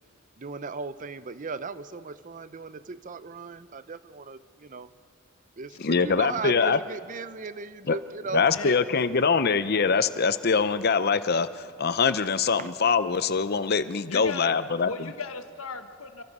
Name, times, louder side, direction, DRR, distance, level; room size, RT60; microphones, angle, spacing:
voice 1, 0.4-4.9 5.6-8.5 12.6-12.7, right 4 dB, 40° right, 14 dB, 0.6 m, -37 dB
voice 2, 5.8-6.8 7.9-8.0 8.3-14.9, left 5 dB, 50° left, 13 dB, 0.7 m, -23 dB
voice 3, 8.4-8.8 14.0-14.6 14.8-16.2, left 4 dB, 85° left, 8 dB, 1.3 m, -37 dB
28.0 x 23.5 x 5.5 m, 2.3 s
head